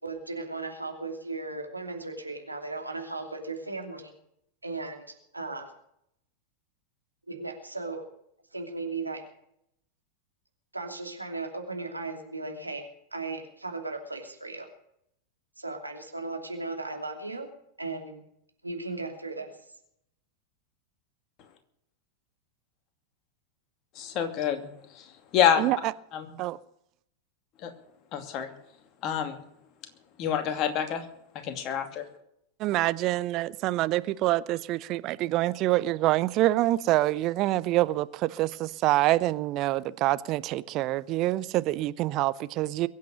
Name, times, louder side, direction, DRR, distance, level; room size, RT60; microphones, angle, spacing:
voice 1, 0.0-4.1 4.6-5.7 7.3-8.0 8.5-9.2 10.7-14.7 15.6-17.5 17.8-18.2 18.6-19.5, right 3 dB, 85° right, 2.8 m, -36 dB
voice 2, 24.0-25.0 25.3-25.7 26.1-26.3 27.6-27.7 28.1-28.5 29.0-29.4 30.2-31.1 31.4-32.0, left 9 dB, 35° left, 2.5 m, -27 dB
voice 3, 25.6-25.9 26.4-26.6 32.6-42.9, right 16 dB, 40° right, 0.7 m, -26 dB
22.5 x 8.6 x 6.5 m
figure-of-eight pair, 90°, 0 cm